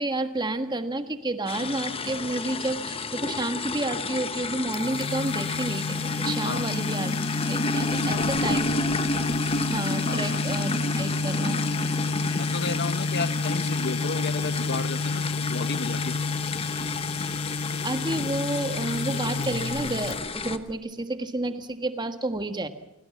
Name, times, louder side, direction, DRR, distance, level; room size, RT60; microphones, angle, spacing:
voice 1, 0.0-8.8 9.1-9.2 9.7-11.6 17.8-22.7, right 2 dB, 20° right, 8 dB, 1.5 m, -30 dB
sound 1, 1.5-20.6, left 3 dB, 25° left, 1.0 m, -30 dB
sound 2, 1.6-4.8, left 2 dB, 50° right, 1.9 m, -48 dB
sound 3, 4.7-20.7, left 3 dB, 80° left, 0.9 m, -31 dB
voice 2, 7.9-8.7 10.0-10.4 12.3-16.3, left 4 dB, 50° left, 13 dB, 0.9 m, -33 dB
28.5 x 18.0 x 7.3 m, 0.86 s
head